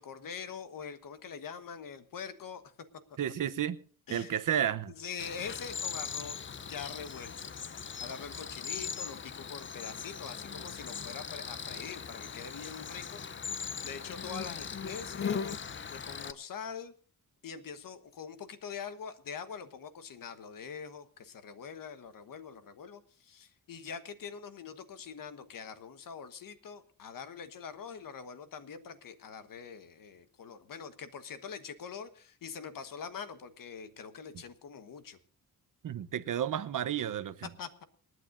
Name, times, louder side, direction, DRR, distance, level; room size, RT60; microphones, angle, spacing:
voice 1, 0.0-2.6 4.1-4.4 4.9-7.5 7.8-13.2 13.5-15.6 15.9-16.9 17.4-35.2 37.6-37.8, left 6 dB, 65° left, 1.4 m, -44 dB
voice 2, 3.2-3.8 4.1-4.9 35.8-37.5, right 10 dB, 60° right, 0.9 m, -32 dB
Cricket, 5.2-16.3, left 6 dB, 35° left, 0.7 m, -39 dB
28.0 x 9.5 x 2.6 m
cardioid pair, 105°, 36 cm